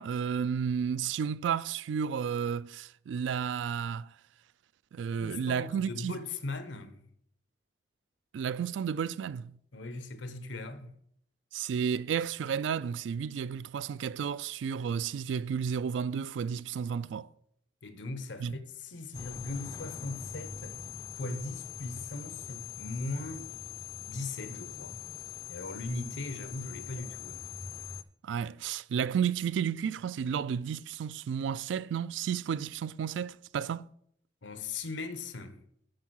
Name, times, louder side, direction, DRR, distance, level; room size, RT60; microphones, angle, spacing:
voice 1, 0.0-4.1 4.9-6.2 8.3-9.6 11.5-17.3 18.4-18.5 28.2-33.9, right 7 dB, 85° right, 0.3 m, -32 dB
voice 2, 5.2-7.1 9.7-11.0 17.8-20.8 21.2-23.5 24.0-25.0 25.5-27.5 34.4-35.6, left 2 dB, 90° left, 1.0 m, -39 dB
sound 1, 19.1-28.0, left 7 dB, 20° left, 0.3 m, -43 dB
9.5 x 4.6 x 6.2 m
head